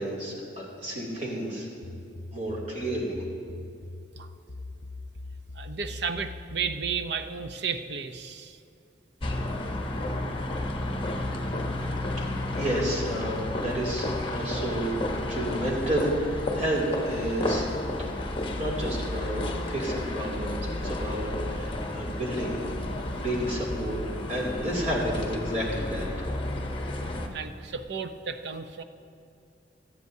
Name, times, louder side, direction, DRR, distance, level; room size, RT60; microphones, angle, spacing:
voice 1, 0.0-1.7 2.3-3.2 11.3-11.5 12.2-12.3 12.6-14.9 15.3-17.7 18.6-22.6 23.2-26.1, right 1 dB, 40° right, -4 dB, 2.7 m, -31 dB
sound 1, 1.8-7.1, left 2 dB, 60° left, 0.7 m, -42 dB
voice 2, 5.5-8.6 27.3-28.8, right 6 dB, 65° right, 9 dB, 0.6 m, -33 dB
sound 2, 9.2-27.3, left 1 dB, 30° left, 1.0 m, -32 dB
17.5 x 13.0 x 2.7 m, 2.6 s
head